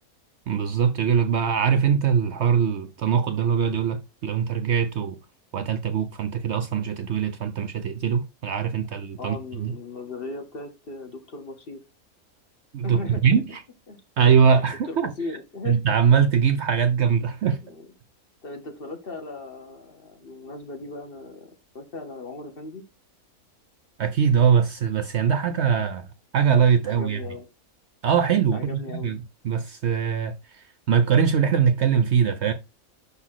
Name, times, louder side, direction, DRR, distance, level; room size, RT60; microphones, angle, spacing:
voice 1, 0.5-5.2 5.5-9.7 12.7-13.4 14.2-15.1 15.7-17.6 24.0-26.1 26.3-27.2 28.0-32.5, right 7 dB, 65° right, 0.7 m, -22 dB
voice 2, 9.2-11.8 12.8-13.3 13.9-14.0 14.9-15.8 17.6-17.9 18.4-22.8 25.7-25.8 26.9-27.5 28.5-29.1, left 3 dB, 45° left, 1.2 m, -37 dB
5.8 x 4.0 x 6.1 m
omnidirectional pair, 1.5 m